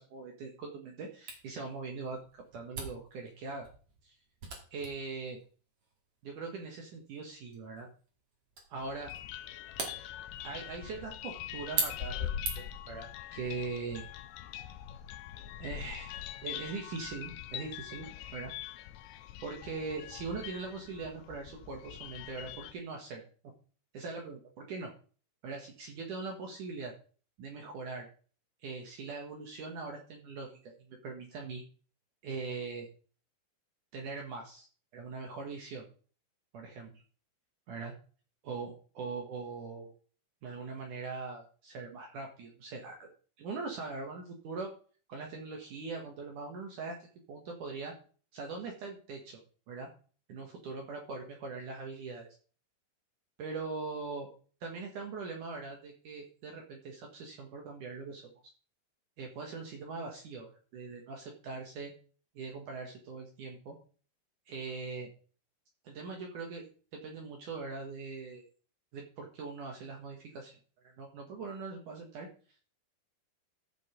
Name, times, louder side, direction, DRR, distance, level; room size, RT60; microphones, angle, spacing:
voice 1, 0.0-3.7 4.0-4.2 4.7-5.4 6.2-7.9 8.7-9.1 10.4-14.0 15.6-18.1 18.3-18.5 19.4-23.2 23.9-24.9 25.4-26.9 27.4-28.1 28.6-31.6 32.2-32.9 33.9-34.7 34.9-35.9 36.5-36.9 37.7-37.9 38.4-39.9 40.4-43.1 43.4-44.7 45.1-47.9 48.3-49.4 49.7-49.9 50.3-52.3 53.4-54.3 54.6-58.3 59.2-61.9 62.3-63.8 64.5-65.1 65.8-66.6 66.9-68.4 68.9-70.6 70.8-72.3, right 4 dB, 60° right, 1 dB, 2.7 m, -41 dB
Camera, 1.3-12.9, right 4 dB, 40° right, 2.9 m, -42 dB
sound 1, 8.8-22.7, left 11 dB, 85° left, 2.8 m, -43 dB
14.5 x 5.2 x 5.1 m, 0.39 s
omnidirectional pair, 4.8 m